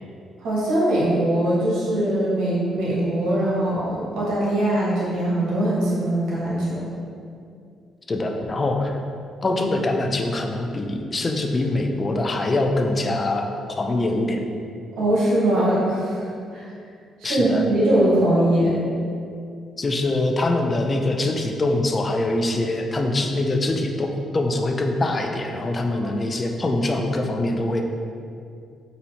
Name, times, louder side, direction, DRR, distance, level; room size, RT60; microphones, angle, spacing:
voice 1, 0.4-6.8 15.0-16.7 17.2-18.8 25.9-26.1, right 1 dB, 85° right, -7 dB, 1.2 m, -21 dB
voice 2, 8.1-9.0 9.4-14.4 17.2-17.7 19.8-27.8, left 2 dB, 30° left, 3 dB, 0.4 m, -24 dB
4.2 x 2.7 x 4.2 m, 2.4 s
cardioid pair, 90°, 0 cm